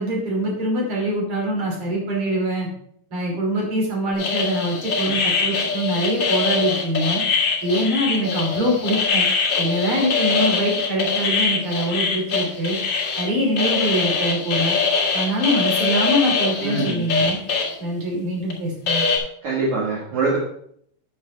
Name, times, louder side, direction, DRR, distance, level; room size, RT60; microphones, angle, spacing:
voice 1, 0.0-2.7 3.1-7.2 7.6-9.3 9.6-12.8 13.2-14.8 15.1-17.4 17.8-19.1, equal, 35° right, -2 dB, 3.0 m, -24 dB
sound 1, 4.2-13.2 13.6-17.7 18.5-18.6 18.9-19.2, left 4 dB, 65° left, 1.1 m, -23 dB
voice 2, 16.6-17.0 19.4-20.4, right 3 dB, 60° right, -5 dB, 2.1 m, -23 dB
10.5 x 7.2 x 3.4 m, 0.68 s
omnidirectional pair, 5.6 m